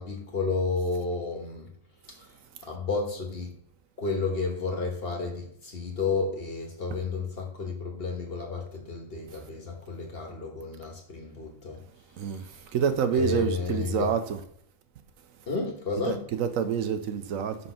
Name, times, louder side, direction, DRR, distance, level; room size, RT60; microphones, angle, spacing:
voice 1, 0.0-1.7 2.1-3.5 4.0-11.8 12.3-12.5 13.1-14.1 15.5-16.3, left 4 dB, 45° left, 1.5 m, -32 dB
voice 2, 12.7-14.4 16.1-17.6, right 7 dB, 80° right, 1.1 m, -27 dB
5.4 x 4.2 x 5.6 m
omnidirectional pair, 1.4 m